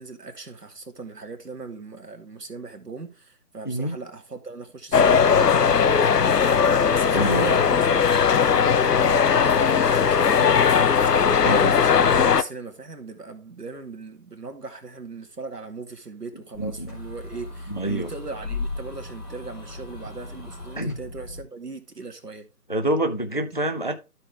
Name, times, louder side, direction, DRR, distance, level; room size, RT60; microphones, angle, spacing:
voice 1, 0.0-6.6 6.9-8.1 8.4-22.5, right 4 dB, 80° right, 2.0 m, -39 dB
voice 2, 3.6-4.0 7.1-7.5 11.4-11.7 16.6-16.9 17.7-18.1 20.8-21.0 22.7-24.0, right 1 dB, 35° left, 0.5 m, -26 dB
sound 1, 4.9-12.4, left 6 dB, 80° left, 0.8 m, -18 dB
sound 2, 16.5-21.4, left 3 dB, ahead, 1.7 m, -36 dB
12.5 x 4.5 x 3.4 m
figure-of-eight pair, 155°, 47 cm